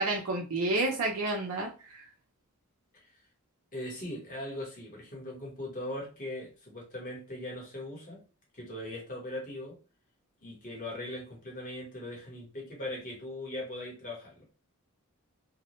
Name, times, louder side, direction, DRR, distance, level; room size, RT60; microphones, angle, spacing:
voice 1, 0.0-2.0, right 2 dB, 75° right, -1 dB, 0.5 m, -30 dB
voice 2, 3.7-8.2 8.5-9.8 10.4-14.3, left 1 dB, 40° left, -3 dB, 1.1 m, -40 dB
2.2 x 2.0 x 3.0 m, 0.33 s
head